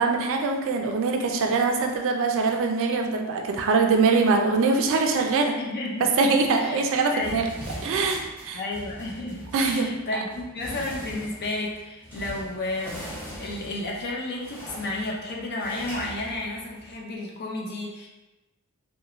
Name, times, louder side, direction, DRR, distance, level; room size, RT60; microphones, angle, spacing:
voice 1, 0.0-5.5 6.2-7.4 7.8-8.6 9.5-9.9, right 4 dB, 60° right, 3 dB, 0.3 m, -23 dB
voice 2, 5.6-6.1 6.6-6.9 7.1-7.5 8.5-13.1 13.4-18.1, left 2 dB, 45° left, -2 dB, 0.5 m, -32 dB
sound 1, 7.2-17.0, equal, 10° left, 0.7 m, -41 dB
2.9 x 2.2 x 2.4 m, 1.1 s
head